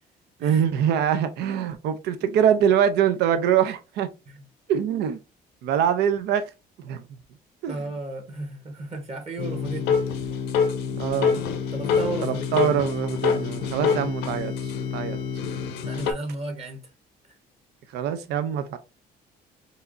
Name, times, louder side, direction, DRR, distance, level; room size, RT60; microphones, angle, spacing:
voice 1, 0.4-4.1 4.7-5.2 5.6-6.5 6.8-7.0 7.6-7.8 10.9-11.4 12.2-15.2 17.9-18.8, right 9 dB, 80° right, 0.6 m, -24 dB
voice 2, 7.7-10.3 11.7-12.5 15.8-16.8 17.3-17.4, right 2 dB, 40° right, 1.4 m, -34 dB
sound 1, 9.4-16.1, left 6 dB, 85° left, 0.8 m, -26 dB
4.6 x 3.1 x 2.6 m
cardioid pair, 110°, 17 cm